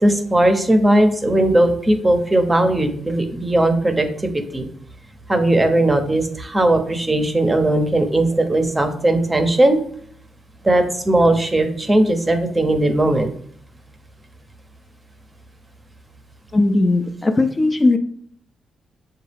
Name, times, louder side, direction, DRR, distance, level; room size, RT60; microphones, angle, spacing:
voice 1, 0.0-4.7 5.3-9.8 10.6-13.3, right 1 dB, 20° right, 6 dB, 0.7 m, -18 dB
voice 2, 16.5-18.0, left 2 dB, 25° left, 6 dB, 0.4 m, -17 dB
6.3 x 2.3 x 3.4 m, 0.62 s
cardioid pair, 85°, 0 cm